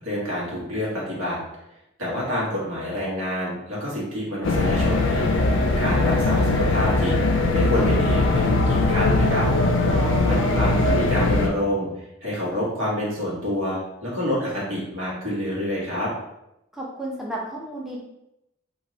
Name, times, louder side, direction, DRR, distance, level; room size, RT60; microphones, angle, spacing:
voice 1, 0.0-1.4 2.0-7.1 7.5-9.5 10.3-11.9 12.2-16.1, equal, 85° right, -6 dB, 1.3 m, -27 dB
sound 1, 4.4-11.5, left 2 dB, 65° left, 0.4 m, -20 dB
voice 2, 9.9-10.7 16.7-18.0, right 1 dB, ahead, -4 dB, 0.4 m, -33 dB
3.0 x 2.6 x 2.7 m, 0.86 s
head